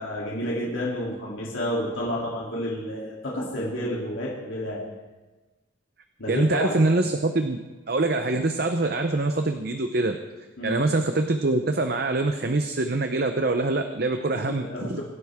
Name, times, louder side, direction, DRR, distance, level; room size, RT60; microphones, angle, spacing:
voice 1, 0.0-4.8 6.2-6.8 10.6-10.8 14.5-15.0, equal, 75° left, -5 dB, 3.1 m, -30 dB
voice 2, 6.3-7.6 7.9-10.2 10.6-15.0, right 2 dB, 50° right, 7 dB, 0.7 m, -24 dB
24.5 x 11.0 x 3.6 m, 1.2 s
head